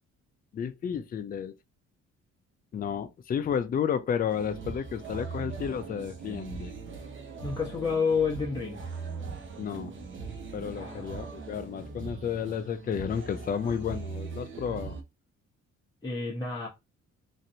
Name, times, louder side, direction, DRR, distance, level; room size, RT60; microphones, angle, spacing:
voice 1, 0.5-1.6 2.7-6.7 9.6-10.0 10.5-15.0, left 8 dB, 30° left, 0.4 m, -32 dB
sound 1, 4.3-15.0, right 4 dB, 40° right, 0.8 m, -40 dB
voice 2, 7.4-8.9 10.7-11.2 16.0-16.7, left 5 dB, 10° left, 0.8 m, -29 dB
3.0 x 2.5 x 2.7 m
cardioid pair, 90°, 30 cm